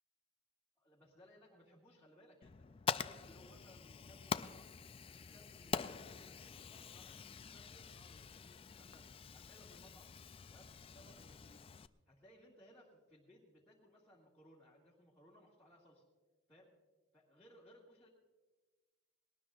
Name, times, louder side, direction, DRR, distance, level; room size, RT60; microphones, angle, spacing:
voice 1, 0.8-2.7 3.0-4.7 5.0-10.1 10.5-11.6 12.1-16.0 16.5-16.7 17.1-18.1, equal, 10° left, -8 dB, 2.0 m, -64 dB
Fire, 2.4-11.9, left 6 dB, 30° left, 0.3 m, -45 dB
21.0 x 18.5 x 2.5 m, 1.3 s
head